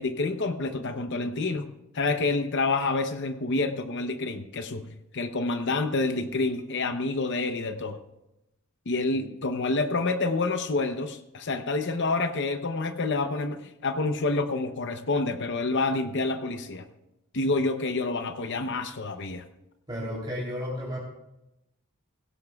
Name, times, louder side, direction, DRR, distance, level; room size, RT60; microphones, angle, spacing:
voice 1, 0.0-1.7 1.9-8.0 8.9-16.8 17.3-19.4, left 3 dB, 50° left, 7 dB, 0.7 m, -28 dB
voice 2, 19.9-21.0, equal, 20° right, -5 dB, 3.1 m, -33 dB
17.5 x 17.0 x 2.3 m, 0.91 s
head